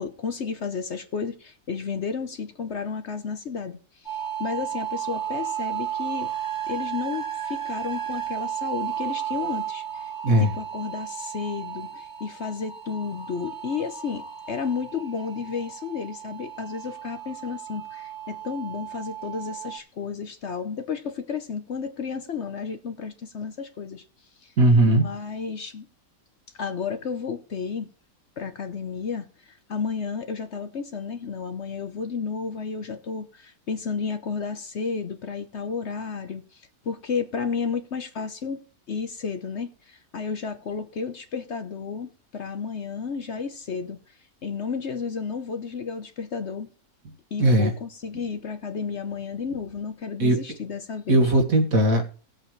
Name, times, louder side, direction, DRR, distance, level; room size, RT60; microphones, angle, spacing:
voice 1, 0.0-6.3 6.7-24.0 24.4-24.5 24.9-25.9 26.6-27.9 28.4-38.6 38.9-44.0 44.4-46.7 47.3-51.3, left 5 dB, 50° left, 1.0 m, -32 dB
sound 1, 4.0-19.8, right 10 dB, 15° left, 1.8 m, -34 dB
voice 2, 24.6-25.0 47.4-47.7 50.2-50.4 51.1-52.1, right 1 dB, 65° right, 2.1 m, -18 dB
18.0 x 7.9 x 3.2 m
omnidirectional pair, 1.6 m